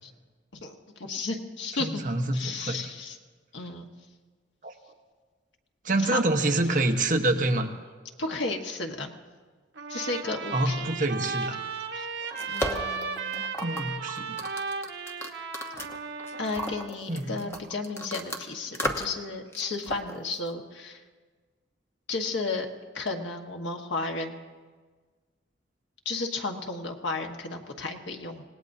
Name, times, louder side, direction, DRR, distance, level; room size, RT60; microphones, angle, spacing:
voice 1, 0.5-2.0 2.3-3.2 3.5-3.9 6.0-6.2 8.2-9.1 9.9-10.9 11.7-12.1 12.5-13.4 16.4-21.0 22.1-22.7 22.9-24.3 26.0-28.4, left 3 dB, 80° left, 3 dB, 1.4 m, -33 dB
voice 2, 1.8-2.8 4.6-4.7 5.8-7.7 10.5-11.6 13.6-14.5 17.1-17.6, right 2 dB, 45° right, 3 dB, 1.1 m, -27 dB
Trumpet, 9.7-16.9, right 5 dB, 75° right, 1.2 m, -35 dB
sound 1, 12.0-18.4 18.7-19.2 19.5-20.5, equal, 15° left, 1.1 m, -35 dB
26.5 x 18.5 x 2.7 m, 1.4 s
head